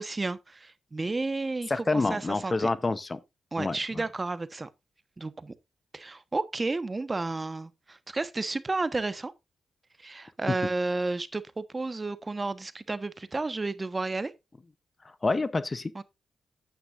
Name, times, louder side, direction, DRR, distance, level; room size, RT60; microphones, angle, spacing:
voice 1, 0.0-2.7 3.5-4.7 5.2-5.5 5.9-9.3 10.0-14.3 15.9-16.0, right 3 dB, 30° right, 1.1 m, -32 dB
voice 2, 1.7-3.2 3.6-4.0 10.5-10.6 15.2-16.0, left 3 dB, 30° left, 0.8 m, -28 dB
9.2 x 9.1 x 2.5 m
cardioid pair, 60°, 0 cm